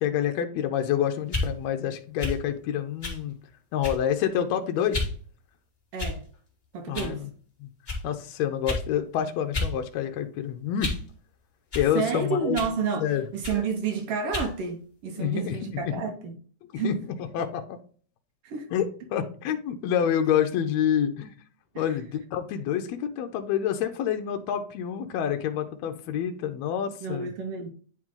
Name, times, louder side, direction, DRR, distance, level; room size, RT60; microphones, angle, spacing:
voice 1, 0.0-3.4 3.7-5.1 6.9-7.3 7.6-7.7 8.0-10.9 11.8-12.6 13.0-13.2 15.1-15.9 16.7-16.9 17.3-17.8 18.7-18.9 19.1-21.3 21.8-27.3, left 9 dB, 75° left, 1.7 m, -27 dB
sound 1, 1.2-1.5 2.2-2.4 3.0-3.2 3.8-4.1 4.9-5.1 6.0-6.4 6.9-7.1 7.9-8.0 8.7-8.9 9.5-9.7 10.1-11.1 11.7-11.9 12.5-12.8 13.4-13.6 14.3-14.5, left 3 dB, 25° left, 1.1 m, -31 dB
voice 2, 5.9-6.2 6.7-7.2 11.9-16.4 16.8-17.0 18.4-18.7 21.7-21.9 27.0-27.7, right 5 dB, 75° right, 1.4 m, -30 dB
9.4 x 3.2 x 3.6 m
omnidirectional pair, 3.5 m